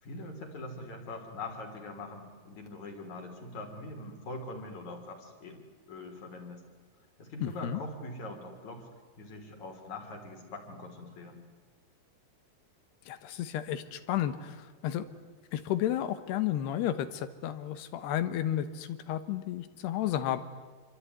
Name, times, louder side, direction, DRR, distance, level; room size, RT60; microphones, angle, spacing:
voice 1, 0.0-6.6 7.2-8.9 9.2-11.4, left 2 dB, 50° left, 4 dB, 4.6 m, -43 dB
voice 2, 7.4-7.8 13.1-15.1 15.5-20.4, left 11 dB, 85° left, 12 dB, 3.4 m, -32 dB
27.0 x 23.0 x 9.6 m, 1.4 s
omnidirectional pair, 4.6 m